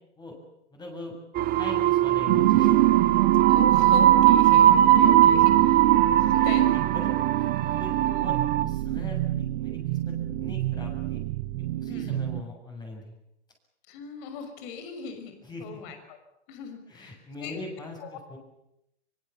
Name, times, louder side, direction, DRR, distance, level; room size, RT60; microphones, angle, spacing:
voice 1, 0.7-1.2 1.5-2.8 6.3-6.6 6.9-7.1 7.4-11.2 11.8-13.1 15.4-15.8 16.9-18.4, left 2 dB, 10° left, 1 dB, 7.6 m, -41 dB
sound 1, 1.4-8.6, right 11 dB, 25° right, 1.3 m, -21 dB
sound 2, 2.3-12.4, right 16 dB, 45° right, 1.2 m, -25 dB
voice 2, 3.5-5.9 6.2-6.8 8.0-8.2 11.9-12.2 13.9-16.2 16.5-17.6 18.0-18.1, left 6 dB, 45° left, 8 dB, 6.1 m, -40 dB
25.0 x 24.5 x 7.2 m, 0.81 s
hypercardioid pair, 120°, 35 cm